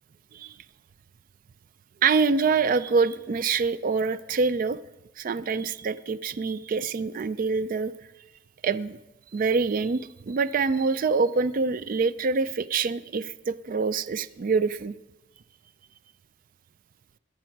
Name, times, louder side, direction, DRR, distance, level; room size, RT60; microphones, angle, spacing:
voice 1, 2.0-4.8 5.2-7.9 8.6-9.0 9.3-14.9, right 4 dB, 45° right, 16 dB, 0.4 m, -25 dB
17.5 x 11.5 x 4.6 m, 1.1 s
head